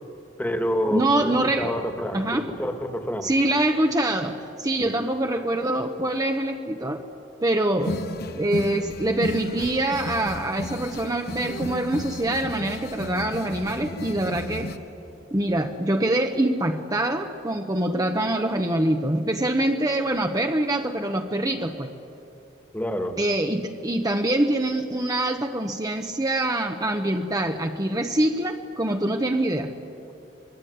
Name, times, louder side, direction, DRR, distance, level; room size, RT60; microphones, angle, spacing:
voice 1, 0.4-3.3 4.8-4.9 22.7-23.2, equal, 10° left, 6 dB, 1.8 m, -28 dB
voice 2, 0.9-1.7 2.1-2.5 3.2-7.0 7.4-8.0 8.3-14.7 15.3-21.9 23.2-29.7, right 1 dB, 20° right, 4 dB, 1.0 m, -24 dB
sound 1, 7.8-14.8, left 1 dB, 60° left, 1.3 m, -33 dB
25.5 x 22.5 x 9.5 m, 2.7 s
head